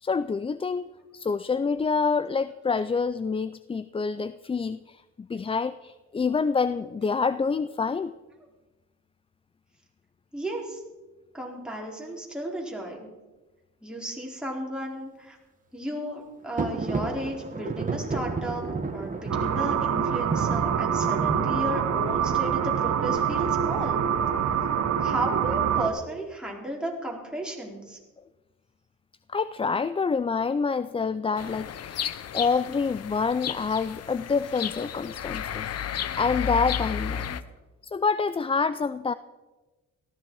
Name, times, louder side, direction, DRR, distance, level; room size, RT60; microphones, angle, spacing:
voice 1, 0.0-8.1 29.3-32.0 32.3-35.7 36.1-37.4 37.8-39.1, left 5 dB, 20° left, 15 dB, 0.4 m, -27 dB
voice 2, 10.3-10.8 11.3-13.0 13.8-15.4 15.7-24.1 24.4-24.6 25.0-28.0, right 1 dB, 5° right, -2 dB, 4.0 m, -34 dB
sound 1, 16.6-25.1, right 4 dB, 25° right, 1.8 m, -33 dB
sound 2, 19.3-25.9, right 8 dB, 60° right, 1.5 m, -25 dB
sound 3, 31.4-37.4, left 9 dB, 55° left, 0.8 m, -33 dB
18.0 x 14.5 x 4.7 m, 1.2 s
cardioid pair, 90°, 30 cm